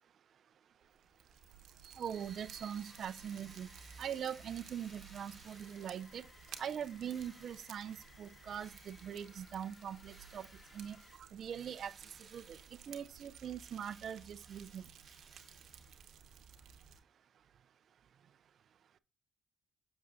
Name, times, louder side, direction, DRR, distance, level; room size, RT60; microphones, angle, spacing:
Fire, 0.8-17.0, right 8 dB, 75° right, 1.0 m, -57 dB
voice 1, 1.8-3.7 4.0-6.3 6.6-10.5 10.7-11.0 11.3-11.9 12.3-12.6 12.9-14.8, right 8 dB, 60° right, 0.4 m, -42 dB
sound 1, 2.1-11.2, left 3 dB, 35° left, 1.3 m, -61 dB
Drill, 2.2-6.3 7.0-8.0 8.5-9.4 10.0-10.9 11.5-13.1 13.5-16.1, right 3 dB, 25° right, 2.2 m, -62 dB
7.9 x 6.5 x 2.5 m
cardioid pair, 90°, 0 cm